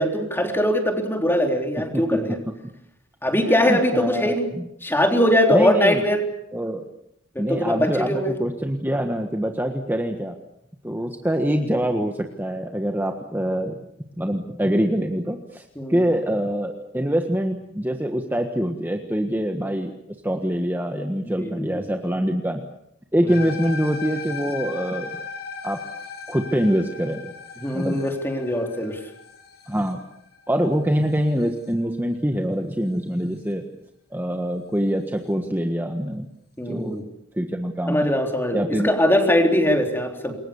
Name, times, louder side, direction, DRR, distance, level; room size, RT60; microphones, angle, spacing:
voice 1, 0.0-2.3 3.2-4.5 4.8-6.2 7.4-8.3 15.8-15.9 21.2-21.7 27.6-29.0 36.6-37.1 37.9-40.4, left 1 dB, 10° left, 3 dB, 3.7 m, -21 dB
voice 2, 1.8-2.4 3.4-4.7 5.5-6.0 6.5-6.8 7.4-10.3 10.8-13.8 14.2-19.9 20.2-22.6 23.1-25.1 25.6-25.8 26.3-27.2 27.7-28.0 29.7-30.0 30.5-33.6 34.1-36.2 36.6-37.0 37.3-38.1 38.5-38.9, equal, 10° right, 4 dB, 1.4 m, -24 dB
sound 1, 23.3-31.7, left 5 dB, 50° left, 5.6 m, -37 dB
28.0 x 22.5 x 7.2 m, 0.78 s
head